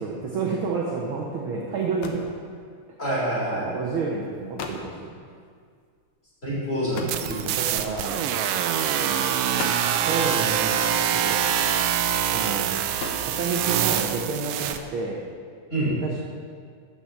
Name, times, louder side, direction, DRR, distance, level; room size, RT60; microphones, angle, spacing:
voice 1, 0.0-2.3 3.6-5.1 7.4-8.3 10.0-11.4 12.3-12.8 13.2-15.2 15.9-16.2, right 4 dB, 65° right, -1 dB, 1.3 m, -30 dB
sound 1, 1.4-1.5 1.8-2.4 3.4-3.6 4.2-4.3 4.6-4.9 6.9-7.8 8.7-8.9 9.4-10.1 11.3-11.8 12.6-13.7, left 4 dB, 70° left, 1.3 m, -37 dB
voice 2, 3.0-3.7 6.4-7.6 8.9-9.2 15.7-16.0, right 1 dB, 20° left, -7 dB, 3.3 m, -27 dB
sound 2, 7.1-14.8, right 9 dB, 85° right, 1.3 m, -24 dB
9.9 x 6.3 x 7.2 m, 2.1 s
omnidirectional pair, 3.4 m